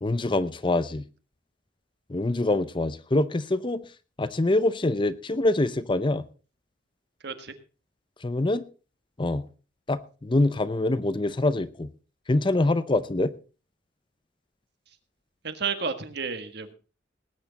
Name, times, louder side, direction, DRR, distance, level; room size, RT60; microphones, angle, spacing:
voice 1, 0.0-1.0 2.1-3.8 4.2-6.2 8.2-8.6 9.2-9.4 9.9-11.9 12.3-13.3, left 2 dB, 25° left, 14 dB, 0.6 m, -25 dB
voice 2, 7.2-7.5 15.4-16.7, right 5 dB, 55° right, 8 dB, 1.6 m, -31 dB
19.0 x 9.5 x 4.1 m, 0.35 s
head